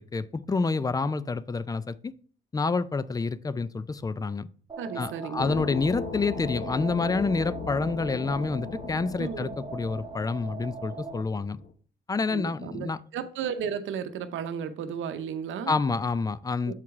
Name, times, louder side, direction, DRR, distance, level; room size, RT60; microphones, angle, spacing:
voice 1, 0.0-2.1 2.5-4.5 5.0-11.6 12.1-13.0 15.7-16.7, left 4 dB, 20° left, 0.4 m, -28 dB
sound 1, 4.7-11.2, right 4 dB, 25° right, 0.7 m, -41 dB
voice 2, 4.8-5.6 9.2-9.5 12.3-15.7 16.7-16.8, right 7 dB, 75° right, 0.7 m, -34 dB
sound 2, 5.4-11.7, left 5 dB, 50° left, 0.8 m, -38 dB
7.3 x 4.7 x 3.5 m
cardioid pair, 90°, 20 cm